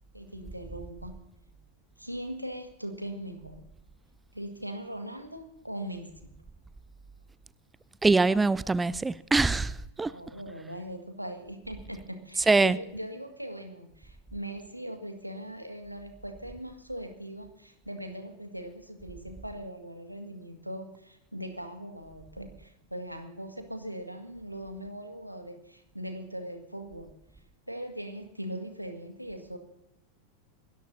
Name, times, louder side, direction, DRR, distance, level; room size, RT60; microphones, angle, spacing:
voice 1, 0.1-1.2 2.0-3.7 4.3-6.1 10.1-27.1 27.7-29.6, right 1 dB, 90° right, 1.9 m, -40 dB
voice 2, 8.0-10.1 12.5-12.8, right 3 dB, 10° right, 0.4 m, -23 dB
26.5 x 13.5 x 2.7 m
figure-of-eight pair, 90°, 0 cm